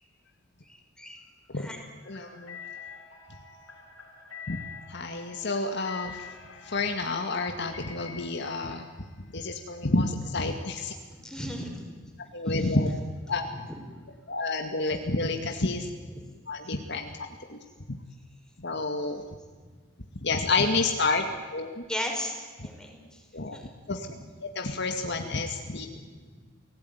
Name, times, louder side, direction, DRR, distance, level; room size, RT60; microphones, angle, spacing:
voice 1, 0.7-1.2 1.5-1.8 11.2-12.1 13.5-13.6 16.1-16.2 21.1-21.2 21.9-22.3 22.6-23.0 23.5-23.6, equal, 5° left, 2 dB, 5.4 m, -36 dB
sound 1, 2.0-8.2, left 6 dB, 90° left, 6.1 m, -46 dB
voice 2, 2.1-2.6 4.5-4.6 4.9-8.9 9.3-10.9 12.3-12.9 13.3-13.5 14.3-15.9 16.5-17.6 17.9-18.0 18.6-19.2 20.2-21.2 21.5-21.8 23.3-23.6 23.9-24.1 24.4-25.9, left 3 dB, 60° left, 4 dB, 2.1 m, -29 dB
29.5 x 18.0 x 9.5 m, 1.5 s
head